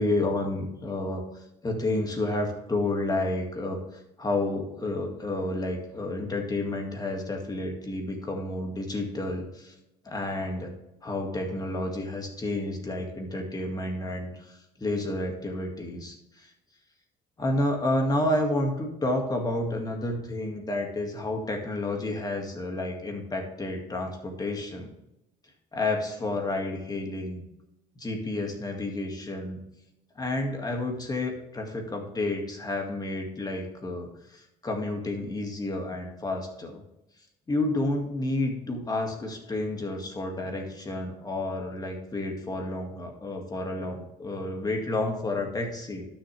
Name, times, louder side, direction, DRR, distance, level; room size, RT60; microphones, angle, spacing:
voice 1, 0.0-9.7 10.0-10.7 11.0-16.5 17.4-24.9 25.7-27.4 28.0-29.6 30.2-36.8 37.5-46.1, left 2 dB, 20° left, 2 dB, 2.1 m, -30 dB
11.5 x 7.0 x 3.4 m, 0.89 s
cardioid pair, 110°, 17 cm